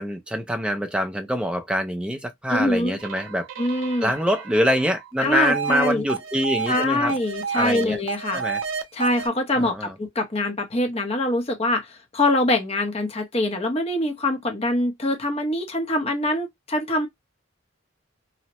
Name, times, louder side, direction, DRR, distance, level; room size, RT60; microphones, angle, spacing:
voice 1, 0.0-3.5 4.0-7.2 7.5-8.0 8.3-8.6 9.5-10.0, equal, 5° right, 0.4 m, -25 dB
voice 2, 2.5-3.0 3.6-4.1 5.2-6.0 6.7-8.4 8.9-11.9 12.1-17.1, left 1 dB, 30° left, 0.8 m, -24 dB
sound 1, 3.0-6.8 7.1-9.3, right 6 dB, 80° right, 0.5 m, -31 dB
2.8 x 2.1 x 2.9 m
head